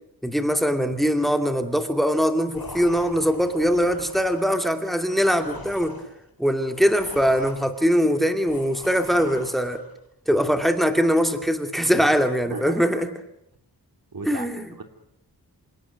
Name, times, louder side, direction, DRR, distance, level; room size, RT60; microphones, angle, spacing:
voice 1, 0.2-5.9 6.4-9.8 10.3-13.1 14.2-14.7, equal, ahead, 7 dB, 2.5 m, -22 dB
sound 1, 2.5-9.9, left 3 dB, 65° left, 3.4 m, -43 dB
voice 2, 12.4-12.8 14.1-14.5 14.8-14.9, right 3 dB, 60° right, 6 dB, 3.2 m, -35 dB
27.5 x 17.5 x 9.3 m, 0.77 s
wide cardioid pair, 75°, 39 cm